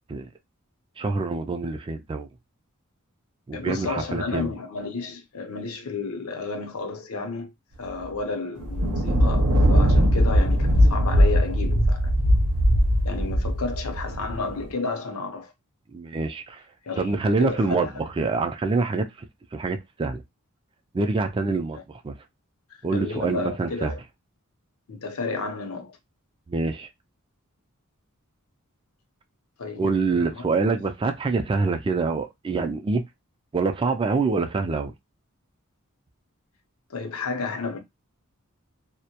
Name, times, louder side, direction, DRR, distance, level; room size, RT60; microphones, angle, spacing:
voice 1, 1.0-2.3 3.5-4.5 15.9-16.6 17.0-19.1 19.5-20.2 20.9-21.8 22.0-22.1 22.8-23.9 26.5-26.9 29.8-33.0 33.5-34.9, right 3 dB, 25° right, 0.3 m, -25 dB
voice 2, 3.5-7.5 7.8-12.1 13.0-15.5 16.8-17.9 21.7-21.8 22.9-24.0 24.9-26.0 29.6-30.7 36.9-37.8, left 3 dB, 70° left, 0.6 m, -32 dB
sound 1, 8.0-8.1 8.6-14.6, equal, 85° right, 0.6 m, -20 dB
2.2 x 2.0 x 2.8 m
head